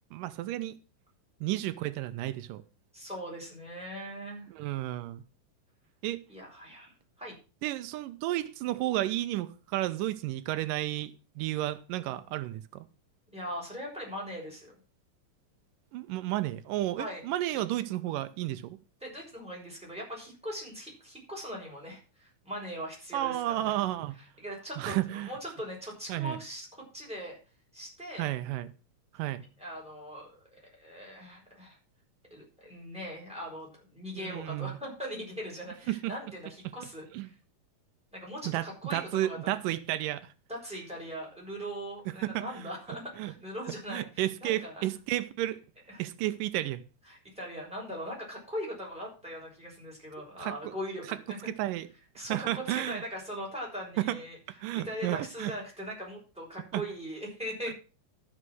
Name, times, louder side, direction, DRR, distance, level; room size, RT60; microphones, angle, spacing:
voice 1, 0.1-0.7 1.4-2.6 4.5-5.2 6.0-6.2 7.6-12.9 15.9-18.8 23.1-24.2 24.8-25.3 26.1-26.4 28.2-28.7 29.1-29.4 34.2-34.8 35.9-36.1 37.1-37.3 38.5-38.7 38.9-40.3 42.2-42.6 43.2-43.3 43.9-45.6 46.0-46.8 50.4-50.7 51.5-51.9 52.2-53.0 54.0-54.2 54.6-55.5 56.7-56.8 57.7-57.8, right 15 dB, 90° right, 2.4 m, -32 dB
voice 2, 2.9-4.5 6.3-6.9 7.2-7.3 13.3-14.7 17.0-17.2 17.5-17.6 19.0-23.8 24.4-27.4 27.7-28.3 29.6-31.8 32.3-37.3 38.1-39.6 40.5-44.0 44.4-44.8 45.9-46.0 47.1-51.4 52.1-54.4 54.7-57.7, equal, ahead, 5.8 m, -40 dB
12.5 x 6.5 x 6.2 m
omnidirectional pair, 3.8 m